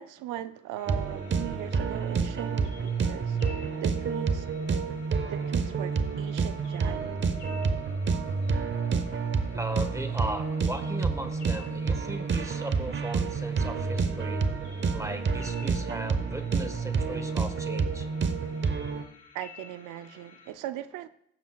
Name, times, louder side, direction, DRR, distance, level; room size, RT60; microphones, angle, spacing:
voice 1, 0.0-4.5 5.3-7.2 19.3-21.1, right 12 dB, 90° right, 0.5 m, -39 dB
sound 1, 0.8-20.5, left 6 dB, 80° left, 2.1 m, -53 dB
sound 2, 0.9-19.0, right 5 dB, 40° right, 0.8 m, -29 dB
voice 2, 9.2-14.4 14.7-18.1, right 1 dB, 10° right, 1.0 m, -37 dB
16.5 x 7.2 x 2.3 m
cardioid pair, 90°, 30 cm